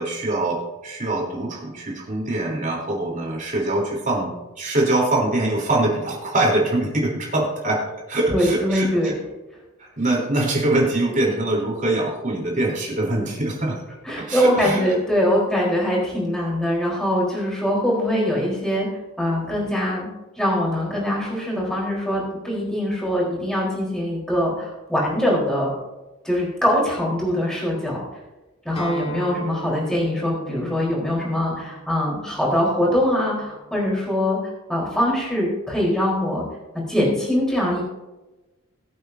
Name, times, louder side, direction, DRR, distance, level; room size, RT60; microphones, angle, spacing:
voice 1, 0.0-4.3 4.6-9.1 9.8-13.8 14.2-14.9, right 2 dB, 40° right, -2 dB, 3.7 m, -23 dB
voice 2, 8.3-9.1 14.0-18.9 19.2-20.1 20.4-25.7 26.2-28.0 28.6-34.4 34.7-36.4 36.9-37.8, equal, 5° left, -5 dB, 4.2 m, -22 dB
Acoustic guitar, 28.8-34.0, right 2 dB, 30° left, 2.2 m, -38 dB
21.5 x 8.2 x 2.8 m, 1.1 s
head